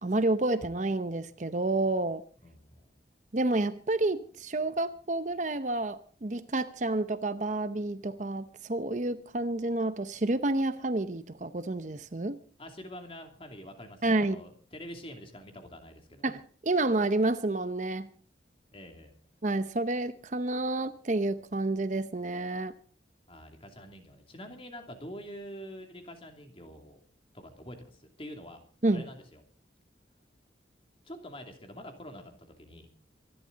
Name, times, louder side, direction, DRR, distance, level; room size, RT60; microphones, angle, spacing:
voice 1, 0.0-2.2 3.3-12.4 14.0-14.4 16.2-18.1 19.4-22.7 28.8-29.0, right 2 dB, 40° right, 0.7 m, -29 dB
voice 2, 2.4-3.0 12.6-16.3 18.7-19.1 23.3-27.0 27.3-28.6 28.9-29.4 31.0-32.9, equal, 30° left, 2.8 m, -46 dB
24.5 x 12.0 x 4.0 m
head